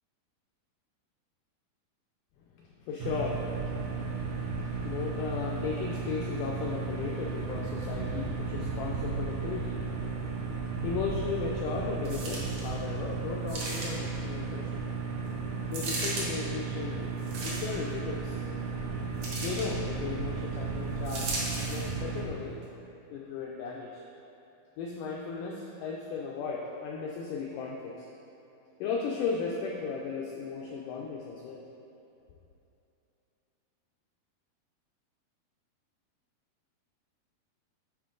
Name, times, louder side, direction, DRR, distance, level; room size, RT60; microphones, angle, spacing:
voice 1, 2.8-3.5 3.8-9.8 10.8-14.8 15.7-17.1 17.4-18.4 19.4-22.6 23.1-24.0 24.8-28.1 28.8-31.6, left 5 dB, 85° left, -2 dB, 1.8 m, -36 dB
sound 1, 3.0-22.3, right 4 dB, 90° right, 1.6 m, -34 dB
sound 2, 12.0-12.7 13.5-14.2 15.7-16.3 17.2-17.9 19.2-19.7 21.0-21.9 22.6-22.7, right 2 dB, 60° right, 1.7 m, -36 dB
11.0 x 4.4 x 3.8 m, 2.8 s
omnidirectional pair, 4.4 m